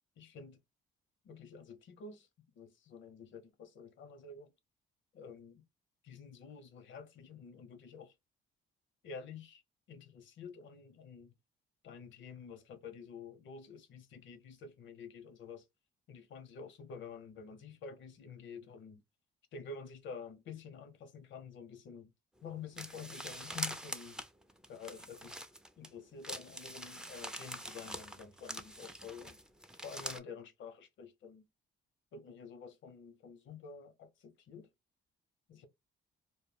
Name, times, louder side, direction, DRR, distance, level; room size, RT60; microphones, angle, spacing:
voice 1, 0.2-0.6 1.2-2.3 2.6-4.5 5.1-5.6 6.0-8.1 9.0-9.6 9.9-11.3 11.8-15.6 16.1-19.0 19.5-22.1 22.4-24.2 24.7-25.4 25.8-29.4 29.8-31.5 32.1-34.7 35.5-35.7, left 5 dB, 70° left, 0.7 m, -49 dB
sound 1, 22.8-25.9 26.2-30.2, right 1 dB, 5° right, 0.3 m, -44 dB
2.1 x 2.1 x 3.2 m
cardioid pair, 90°, 20 cm